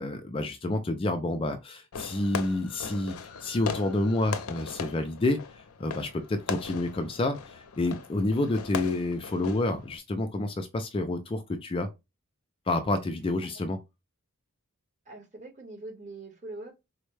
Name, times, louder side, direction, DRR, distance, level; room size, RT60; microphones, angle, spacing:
voice 1, 0.0-11.9 12.7-13.8, left 2 dB, 25° left, 0.4 m, -29 dB
Fireworks, 1.9-10.0, left 6 dB, 75° left, 0.5 m, -39 dB
voice 2, 15.0-16.7, right 2 dB, 35° right, 1.3 m, -43 dB
4.1 x 2.2 x 3.1 m
head